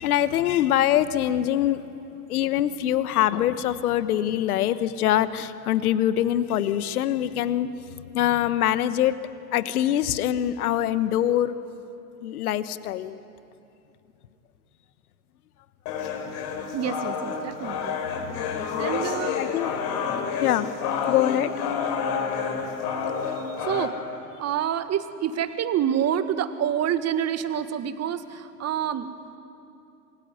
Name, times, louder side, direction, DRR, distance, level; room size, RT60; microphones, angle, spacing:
voice 1, 0.0-1.8 2.3-7.7 8.1-9.1 9.5-11.5 12.2-13.2 16.5-16.6 18.1-19.0 19.4-19.7 20.4-20.7 21.1-21.5, left 12 dB, 70° left, 13 dB, 1.3 m, -24 dB
sound 1, 15.9-23.9, left 6 dB, 55° left, 6.0 m, -29 dB
voice 2, 16.7-18.0 18.8-19.4 23.2-24.0 24.4-29.1, right 9 dB, 35° right, 10 dB, 1.8 m, -27 dB
27.5 x 22.0 x 9.3 m, 2.8 s
hypercardioid pair, 90°, 46 cm